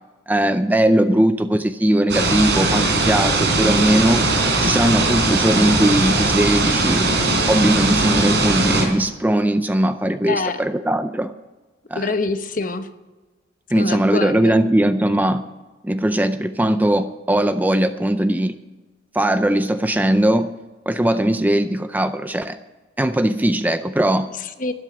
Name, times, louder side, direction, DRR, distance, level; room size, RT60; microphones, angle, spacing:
voice 1, 0.3-4.2 4.6-7.2 7.5-11.3 11.9-12.1 13.7-15.4 15.8-18.6 19.1-20.5 20.9-22.6 23.0-24.3, right 1 dB, 10° right, 10 dB, 0.4 m, -19 dB
sound 1, 2.1-8.8, right 2 dB, 65° right, 3.8 m, -19 dB
voice 2, 4.8-5.2 10.3-10.6 11.9-12.9 13.7-14.6 24.4-24.7, left 3 dB, 45° left, 9 dB, 0.9 m, -26 dB
12.5 x 11.0 x 6.8 m, 1.2 s
head